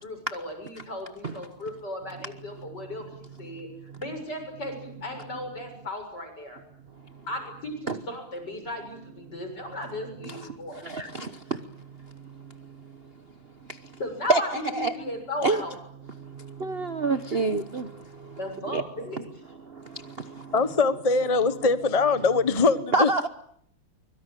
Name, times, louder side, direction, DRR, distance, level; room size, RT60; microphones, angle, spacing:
voice 1, 0.0-3.7 4.0-6.6 7.3-10.9 14.0-15.7 18.4-19.2, left 1 dB, 50° left, 5 dB, 7.7 m, -36 dB
voice 2, 10.2-13.1 13.6-14.0 14.3-14.4 14.7-15.0 15.4-15.6 16.2-18.4 18.7-18.8 19.2-19.3 19.6-20.5 22.9-23.3, right 3 dB, 35° right, 10 dB, 1.0 m, -29 dB
voice 3, 20.5-23.1, left 4 dB, 30° left, 13 dB, 0.6 m, -22 dB
24.5 x 23.5 x 9.1 m, 0.69 s
omnidirectional pair, 2.4 m